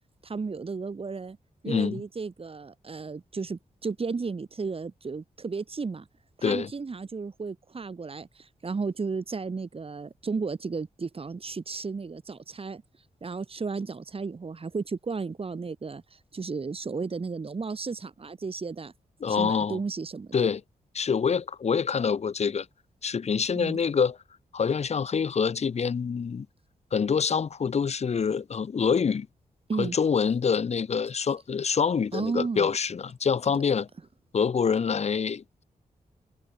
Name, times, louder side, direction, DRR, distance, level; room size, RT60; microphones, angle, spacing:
voice 1, 0.2-1.4 1.6-6.1 6.4-12.8 13.2-18.9 19.3-20.5 23.5-23.8 29.7-30.0 32.1-32.8, right 4 dB, 40° right, 2.6 m, -34 dB
voice 2, 1.7-2.0 6.4-6.7 19.2-19.8 20.3-20.6 20.9-22.7 23.0-24.2 24.5-26.5 26.9-29.3 29.8-33.9 34.3-35.6, left 6 dB, 50° left, 0.9 m, -26 dB
wide cardioid pair, 105°, 14 cm